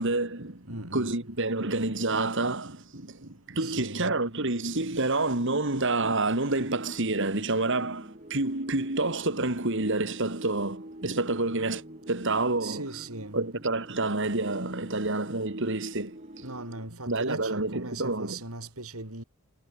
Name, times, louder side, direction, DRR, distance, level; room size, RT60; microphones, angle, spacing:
voice 1, 0.0-11.8 12.1-12.8 13.3-16.2 17.1-18.4, right 2 dB, 55° right, 2.7 m, -28 dB
voice 2, 0.7-1.1 3.6-4.1 12.6-13.4 16.4-19.2, right 2 dB, 75° right, 7.1 m, -38 dB
sound 1, 6.6-16.9, right 1 dB, 35° right, 4.9 m, -46 dB
head